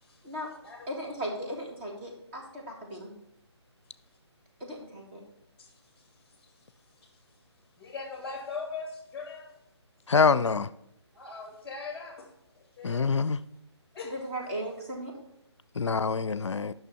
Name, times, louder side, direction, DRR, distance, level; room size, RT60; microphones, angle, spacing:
voice 1, 0.9-3.1 4.6-5.2 14.0-15.1, right 1 dB, 25° right, 2.1 m, -37 dB
voice 2, 7.8-9.5 11.1-12.3 12.6-13.1 13.9-14.1, left 4 dB, 10° left, 1.6 m, -40 dB
voice 3, 10.1-10.7 12.8-13.4 15.8-16.7, left 5 dB, 85° left, 0.4 m, -25 dB
9.4 x 6.0 x 4.2 m
figure-of-eight pair, 150°, 15 cm